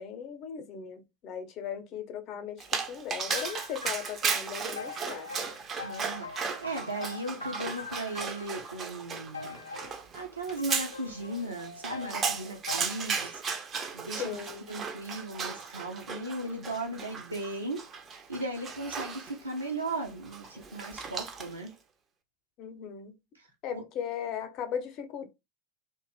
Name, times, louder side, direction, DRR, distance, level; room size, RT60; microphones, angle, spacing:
voice 1, 0.0-5.5 14.2-14.7 22.6-23.1 23.6-25.3, left 8 dB, 35° left, 0.6 m, -38 dB
Dog, 2.6-21.7, right 5 dB, 25° right, 0.4 m, -36 dB
sound 1, 3.3-8.8 9.3-10.0 10.6-12.8, left 4 dB, 80° left, 0.3 m, -43 dB
voice 2, 5.8-6.3 6.6-9.6 10.1-13.4 13.9-14.4 14.7-17.8 18.3-21.7 23.7-23.8, right 2 dB, 85° right, 0.6 m, -37 dB
2.4 x 2.1 x 3.2 m
figure-of-eight pair, 90°, 0 cm